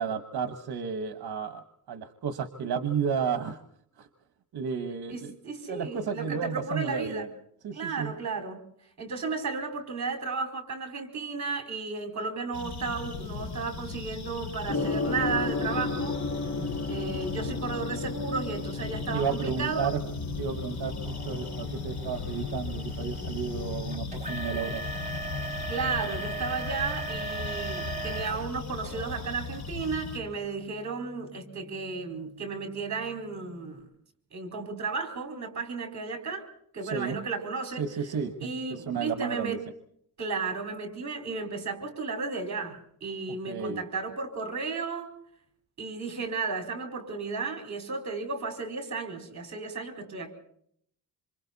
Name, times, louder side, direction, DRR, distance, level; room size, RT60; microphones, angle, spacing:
voice 1, 0.0-3.6 4.0-4.1 4.5-5.3 5.7-7.3 7.6-8.1 16.6-16.7 19.1-20.0 20.4-20.9 21.2-24.9 36.8-37.1 37.8-39.6 43.5-43.8, right 6 dB, 70° right, 9 dB, 1.4 m, -32 dB
voice 2, 5.1-7.3 7.7-8.6 9.0-16.2 16.9-19.9 25.7-33.9 34.3-36.5 36.7-37.8 38.4-39.6 40.2-45.1 45.8-50.3, right 4 dB, 45° right, 5 dB, 4.7 m, -34 dB
sound 1, 12.5-30.2, left 4 dB, 70° left, 7.1 m, -37 dB
Gong, 14.7-33.7, left 3 dB, 40° left, 2.4 m, -37 dB
sound 2, 21.0-28.4 28.8-29.2 29.8-29.9 30.6-30.7, right 2 dB, 15° right, 2.8 m, -38 dB
27.0 x 26.5 x 4.2 m, 0.66 s
wide cardioid pair, 155°, 39 cm